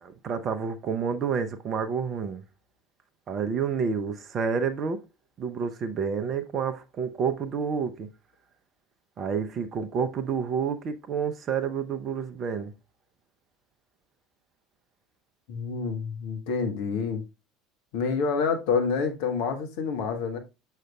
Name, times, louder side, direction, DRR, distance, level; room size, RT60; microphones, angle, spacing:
voice 1, 0.0-2.4 3.3-5.0 5.4-8.1 9.2-12.7, right 6 dB, 40° right, 0.6 m, -29 dB
voice 2, 15.5-17.2 17.9-20.4, left 5 dB, 60° left, 1.1 m, -28 dB
6.5 x 6.3 x 2.3 m
figure-of-eight pair, 70°, 0 cm